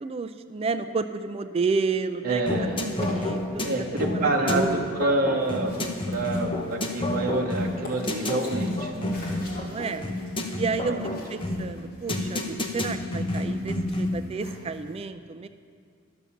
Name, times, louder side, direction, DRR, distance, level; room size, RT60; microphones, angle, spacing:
voice 1, 0.0-2.4 2.8-3.6 4.0-5.0 9.5-10.1 10.6-11.0 11.3-15.5, right 4 dB, 30° right, 11 dB, 0.3 m, -31 dB
voice 2, 2.2-2.8 3.6-5.7 6.1-9.3 10.8-11.1, right 2 dB, 45° right, 0 dB, 1.0 m, -27 dB
sound 1, 2.5-14.3, left 1 dB, 25° left, 0.9 m, -30 dB
sound 2, 2.7-14.9, left 1 dB, 45° left, 2.5 m, -46 dB
11.5 x 7.0 x 7.1 m, 2.1 s
head